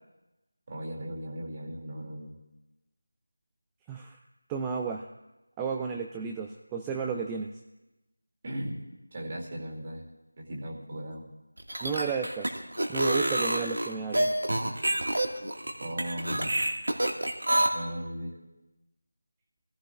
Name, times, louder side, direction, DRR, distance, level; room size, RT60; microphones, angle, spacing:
voice 1, 0.7-2.4 8.4-8.9 9.1-10.1 10.4-11.3 15.8-16.7 17.7-18.4, equal, 30° right, -2 dB, 2.4 m, -37 dB
voice 2, 3.9-4.2 4.5-5.1 5.6-7.5 11.8-12.5 12.9-14.3, right 5 dB, 10° right, 2 dB, 0.3 m, -33 dB
sound 1, 11.6-17.7, right 1 dB, 75° right, 1.7 m, -27 dB
23.0 x 15.0 x 2.4 m, 1.0 s
figure-of-eight pair, 170°, 0 cm